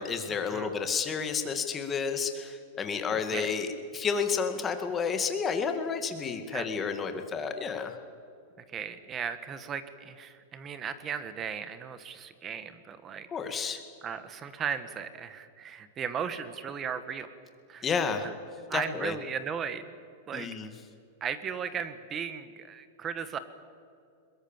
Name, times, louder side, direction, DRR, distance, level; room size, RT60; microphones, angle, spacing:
voice 1, 0.0-3.7 3.9-8.0 13.3-13.8 17.8-18.3 18.7-19.2 20.3-20.7, left 6 dB, 15° left, 7 dB, 2.0 m, -31 dB
voice 2, 3.1-3.5 6.5-6.6 8.7-17.3 17.7-17.9 18.2-18.3 18.7-19.8 20.3-20.5 21.2-23.4, right 7 dB, 20° right, 12 dB, 1.4 m, -36 dB
22.5 x 21.5 x 7.3 m, 2.4 s
supercardioid pair, 155°, 0 cm